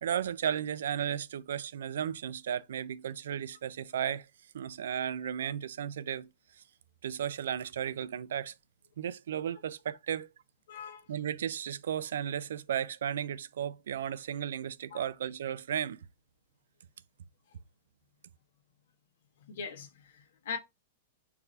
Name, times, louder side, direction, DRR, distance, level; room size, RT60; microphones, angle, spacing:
voice 1, 0.0-4.3 4.5-6.3 7.0-8.5 9.0-10.3 11.1-16.1, right 9 dB, 80° right, 0.4 m, -34 dB
voice 2, 10.7-11.1 14.9-15.1 19.5-20.6, left 6 dB, 70° left, 1.2 m, -41 dB
4.6 x 2.7 x 4.1 m
hypercardioid pair, 150°, 0 cm